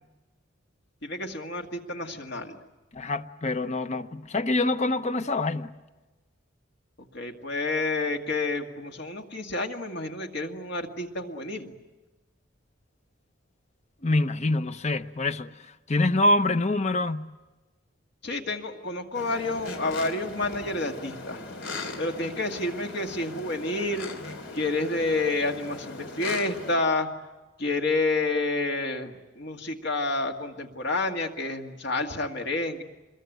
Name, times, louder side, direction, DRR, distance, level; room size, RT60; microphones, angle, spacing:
voice 1, 1.0-2.6 7.1-11.7 18.2-21.4 22.0-24.1 24.5-27.1 27.6-32.8, left 2 dB, 60° left, 2.0 m, -29 dB
voice 2, 2.9-5.7 14.0-15.6 15.9-17.2, left 2 dB, 35° left, 0.8 m, -25 dB
sound 1, 19.1-26.7, left 2 dB, 80° left, 3.3 m, -39 dB
26.5 x 22.0 x 9.2 m
head